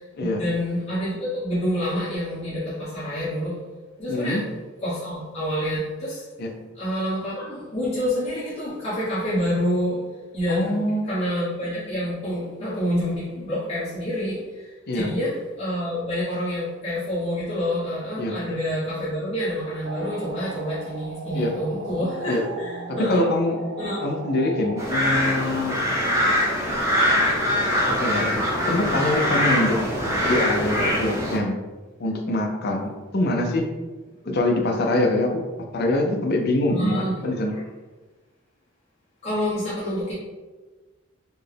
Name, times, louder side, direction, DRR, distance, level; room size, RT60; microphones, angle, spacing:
voice 1, 0.0-3.6 4.0-4.4 4.8-6.3 6.7-10.0 10.3-10.7 11.0-23.2 23.8-24.0 36.7-37.6 39.2-40.1, equal, 30° left, -11 dB, 1.1 m, -27 dB
voice 2, 4.1-4.4 6.4-6.5 10.5-11.0 14.9-15.1 18.2-18.4 21.3-21.5 22.3-22.4 22.9-23.6 24.0-25.8 27.9-29.8 30.2-31.6 32.0-33.7 34.3-35.5 35.7-37.6, left 1 dB, 50° left, 2 dB, 0.4 m, -24 dB
sound 1, 19.8-24.9, right 3 dB, 50° right, 0.5 m, -37 dB
sound 2, 24.8-31.4, equal, 15° right, 0.7 m, -23 dB
4.1 x 2.1 x 3.3 m, 1.3 s
head